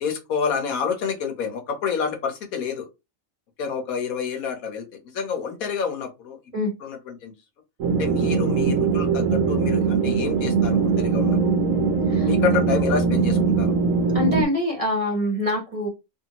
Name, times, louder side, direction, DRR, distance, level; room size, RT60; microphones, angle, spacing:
voice 1, 0.0-2.9 3.6-6.4 6.8-7.3 8.0-11.4 12.3-13.7, left 6 dB, 85° left, 4 dB, 1.3 m, -28 dB
sound 1, 7.8-14.4, right 5 dB, 70° right, 1.1 m, -21 dB
voice 2, 14.1-15.9, left 1 dB, 25° right, -2 dB, 1.2 m, -25 dB
3.0 x 2.7 x 2.9 m, 0.24 s
omnidirectional pair, 1.4 m